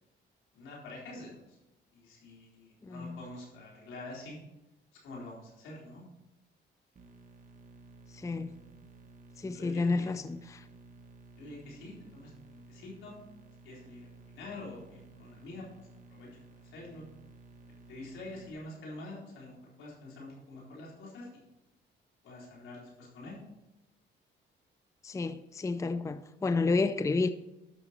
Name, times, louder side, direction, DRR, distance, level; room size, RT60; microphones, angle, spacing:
voice 1, 0.5-1.6 1.9-4.4 5.0-6.0 9.5-10.1 11.4-13.2 13.6-15.6 16.1-16.3 16.7-17.1 17.9-21.3 22.2-23.4, left 2 dB, 85° left, 4.0 m, -46 dB
voice 2, 2.8-3.2 8.1-8.6 9.4-10.7 25.0-27.3, left 3 dB, 15° left, 0.5 m, -30 dB
sound 1, 7.0-18.5, right 3 dB, 40° right, 1.5 m, -55 dB
12.0 x 6.2 x 4.3 m
cardioid pair, 90°, 20 cm